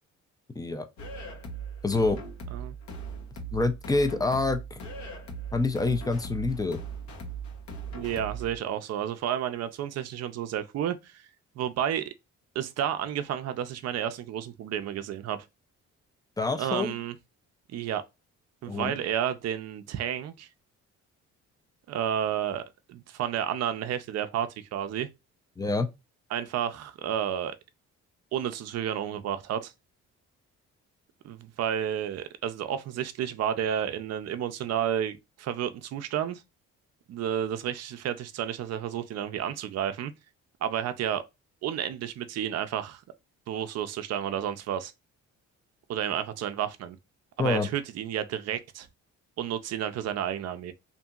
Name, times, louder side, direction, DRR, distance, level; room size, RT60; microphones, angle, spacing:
sound 1, 1.0-8.6, right 4 dB, 70° left, 0.8 m, -39 dB
voice 1, 1.8-2.2 3.5-4.8 5.5-6.8 16.4-17.0 18.7-18.9 25.6-25.9 47.4-47.7, left 3 dB, 15° left, 0.4 m, -26 dB
voice 2, 7.9-11.3 11.6-12.1 12.6-15.4 16.6-17.2 17.7-18.0 18.6-20.5 21.9-22.6 22.9-25.1 26.3-27.5 28.3-29.7 31.2-36.4 37.1-40.1 40.6-41.2 41.6-43.0 43.5-44.9 45.9-47.0 47.4-48.9 49.4-50.7, right 9 dB, 60° right, 0.5 m, -31 dB
2.8 x 2.6 x 2.3 m
cardioid pair, 90°, 30 cm